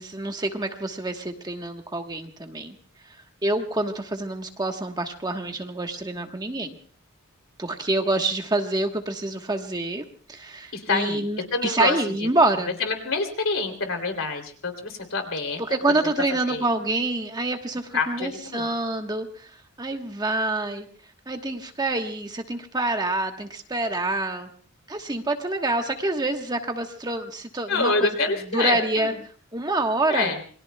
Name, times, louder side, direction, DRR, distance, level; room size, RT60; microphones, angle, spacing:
voice 1, 0.0-2.7 3.4-6.8 7.6-12.7 15.7-19.5 19.8-20.9 21.3-24.5 24.9-28.1 28.5-29.1 29.5-30.3, right 2 dB, 20° right, 4 dB, 1.2 m, -27 dB
voice 2, 10.7-12.3 12.8-15.6 15.9-16.0 16.5-16.6 17.9-18.7 27.7-29.2 30.1-30.4, left 3 dB, 65° left, 7 dB, 3.0 m, -27 dB
28.0 x 22.0 x 2.3 m, 0.43 s
head